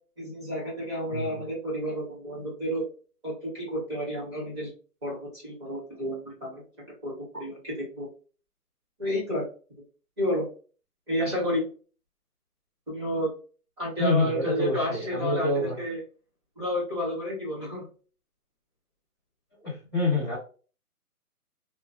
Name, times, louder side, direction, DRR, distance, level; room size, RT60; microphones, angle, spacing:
voice 1, 0.2-2.8 3.2-4.7 5.0-6.6 7.0-8.1 9.0-9.4 10.2-10.5 11.1-11.6 12.9-13.3 13.8-16.0 16.6-17.8, equal, 20° right, -7 dB, 1.1 m, -31 dB
voice 2, 1.1-1.5 14.0-15.8 19.6-20.4, left 2 dB, 15° left, -7 dB, 0.7 m, -27 dB
3.1 x 2.4 x 2.5 m, 0.37 s
hypercardioid pair, 165°, 47 cm